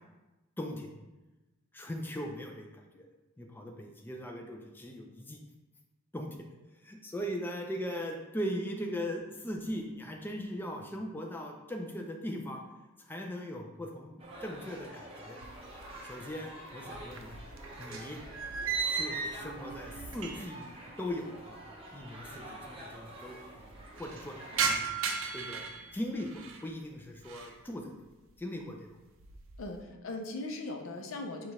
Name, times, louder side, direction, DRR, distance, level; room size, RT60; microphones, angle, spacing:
voice 1, 0.6-0.9 1.7-2.7 2.9-3.0 3.4-5.4 6.1-6.4 6.8-12.6 13.1-15.4 16.1-17.4 17.8-18.2 18.9-20.7 21.0-21.6 21.9-23.7 24.0-24.4 24.7-24.8 25.3-25.6 25.9-27.9 28.4-28.9, equal, 10° left, 1 dB, 0.4 m, -39 dB
sound 1, 14.2-24.7, right 1 dB, 25° right, 0.7 m, -48 dB
sound 2, 15.4-16.3 16.6-20.7 20.9-21.0 21.9-22.0 22.2-22.3 22.6-23.1 23.5-26.7 27.1-27.6 28.1-28.4 28.9-29.8, right 5 dB, 65° right, 0.5 m, -36 dB
voice 2, 29.6-31.5, left 2 dB, 70° left, 3 dB, 0.6 m, -39 dB
4.9 x 2.4 x 4.1 m, 1.1 s
head